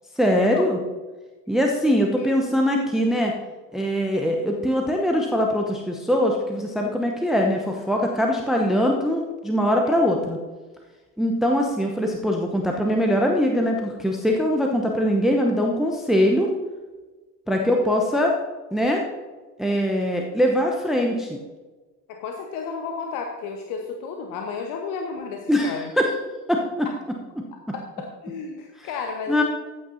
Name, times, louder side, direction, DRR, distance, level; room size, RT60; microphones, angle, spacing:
voice 1, 0.2-0.8 1.5-3.3 3.7-10.4 11.2-16.5 17.5-18.3 18.7-19.0 19.6-21.4 25.5-26.1 26.5-26.9 29.3-29.4, equal, ahead, 1 dB, 0.9 m, -22 dB
voice 2, 1.8-2.3 9.9-10.0 17.6-17.8 22.1-25.9 26.8-26.9 27.7-29.4, left 5 dB, 40° left, 3 dB, 1.1 m, -33 dB
14.5 x 8.7 x 2.7 m, 1.3 s
figure-of-eight pair, 70°, 48 cm